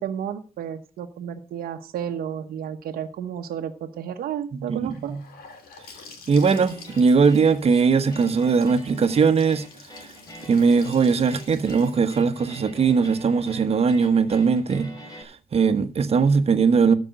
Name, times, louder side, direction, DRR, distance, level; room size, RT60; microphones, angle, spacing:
voice 1, 0.0-5.2, right 9 dB, 85° right, 1.1 m, -32 dB
voice 2, 4.5-5.2 6.3-9.6 10.0-10.1 10.4-16.9, right 5 dB, 40° right, 1.3 m, -20 dB
Gurgling / Sink (filling or washing) / Bathtub (filling or washing), 4.9-14.7, left 4 dB, 90° left, 3.1 m, -49 dB
sound 1, 6.4-15.2, equal, 25° left, 3.3 m, -45 dB
13.0 x 5.3 x 8.0 m
cardioid pair, 125°, 15 cm